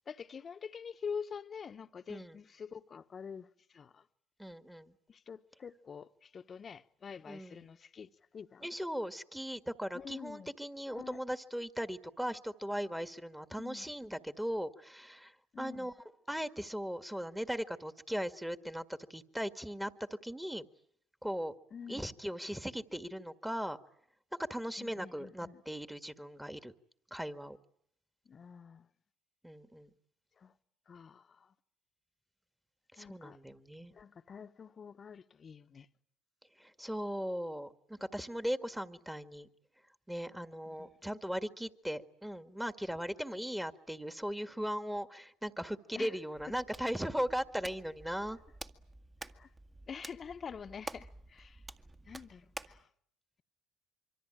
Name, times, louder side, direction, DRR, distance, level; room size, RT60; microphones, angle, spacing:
voice 1, 0.1-3.5 3.7-4.0 5.1-8.7 9.9-10.5 10.9-11.2 13.6-13.9 15.5-15.9 21.7-22.1 24.8-25.6 28.3-28.9 30.4-30.5 30.9-31.5 33.0-33.4 33.9-35.9 40.7-40.9 45.9-46.1 49.3-49.5 49.9-51.6 52.1-52.8, left 6 dB, 40° left, 1.3 m, -46 dB
voice 2, 4.4-4.9 7.3-7.7 8.6-15.3 15.6-15.9 16.3-20.7 21.2-21.5 21.9-23.8 24.5-26.7 27.1-27.6 29.4-29.9 33.0-33.9 36.6-39.5 40.1-48.4, equal, 5° right, 1.8 m, -38 dB
Hands, 46.4-52.8, right 2 dB, 20° right, 1.8 m, -50 dB
26.0 x 24.5 x 9.0 m
hypercardioid pair, 70°, 0 cm